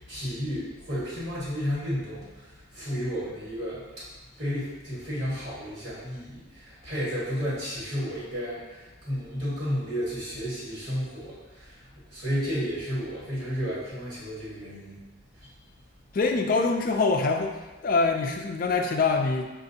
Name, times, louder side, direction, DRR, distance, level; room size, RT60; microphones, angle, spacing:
voice 1, 0.1-2.4 2.7-4.0 4.4-11.7 12.1-15.0 15.4-15.5, equal, 50° right, -10 dB, 1.5 m, -32 dB
voice 2, 16.1-17.5 17.8-19.4, left 3 dB, 45° left, 4 dB, 0.4 m, -24 dB
6.2 x 2.5 x 2.7 m, 1.2 s
head